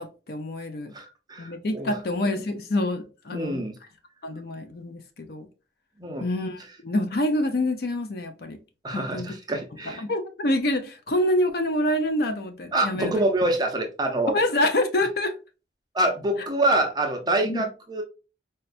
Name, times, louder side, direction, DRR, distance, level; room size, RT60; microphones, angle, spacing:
voice 1, 0.0-0.9 1.4-3.6 4.2-5.5 6.2-8.6 8.9-9.3 10.0-13.1 14.3-15.3 17.4-17.6, left 1 dB, 60° left, 0.5 m, -26 dB
voice 2, 0.9-2.0 3.3-3.7 6.0-6.3 8.8-10.0 12.7-14.4 15.9-18.0, right 1 dB, 25° right, 0.6 m, -26 dB
4.2 x 2.3 x 2.5 m
head